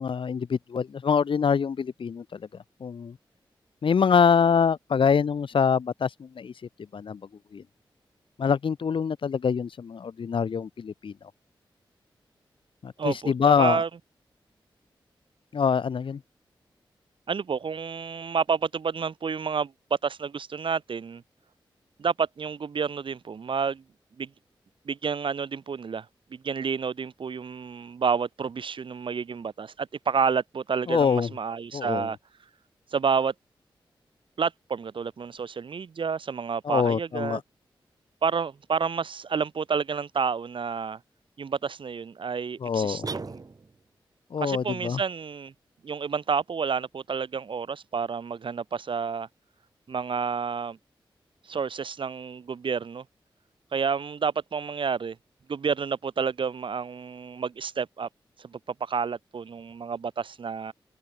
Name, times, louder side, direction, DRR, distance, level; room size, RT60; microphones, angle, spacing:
voice 1, 0.0-2.4 2.8-3.2 3.8-6.5 6.9-7.2 7.5-7.6 8.4-11.1 12.8-13.8 15.5-16.2 30.9-31.3 31.7-32.1 36.6-37.4 42.6-43.1 44.3-45.0, left 6 dB, 70° left, 1.2 m, -24 dB
voice 2, 13.0-13.9 17.3-19.7 20.0-21.2 22.0-23.8 24.2-24.3 24.9-26.1 26.3-32.2 32.9-33.3 34.4-37.4 38.2-41.0 41.4-43.4 44.4-45.5 45.8-49.3 49.9-50.8 51.5-53.0 53.7-55.2 55.5-58.1 58.4-60.7, right 6 dB, 70° right, 1.9 m, -29 dB
sound 1, 43.0-43.9, right 4 dB, 45° right, 1.5 m, -36 dB
cardioid pair, 55°, 9 cm